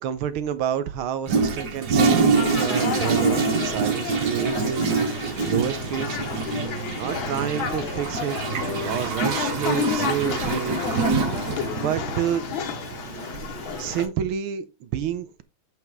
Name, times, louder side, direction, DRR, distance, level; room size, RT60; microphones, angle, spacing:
voice 1, 0.0-6.2 7.0-8.5 8.9-10.8 11.8-12.4 13.8-15.4, right 9 dB, 75° right, 1.6 m, -29 dB
Toilet flush, 1.3-14.1, right 5 dB, 55° right, 1.6 m, -26 dB
sound 1, 2.3-14.1, left 8 dB, 70° left, 1.8 m, -31 dB
7.8 x 5.9 x 3.5 m
omnidirectional pair, 2.4 m